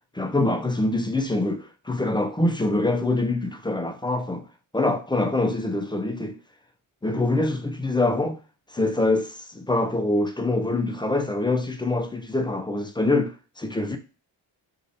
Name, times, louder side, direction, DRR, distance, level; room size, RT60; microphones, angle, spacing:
voice 1, 0.1-4.5 4.7-6.4 7.0-8.4 8.7-14.0, left 2 dB, 10° left, 0.4 m, -24 dB
3.2 x 2.6 x 2.6 m
supercardioid pair, 45°, 47 cm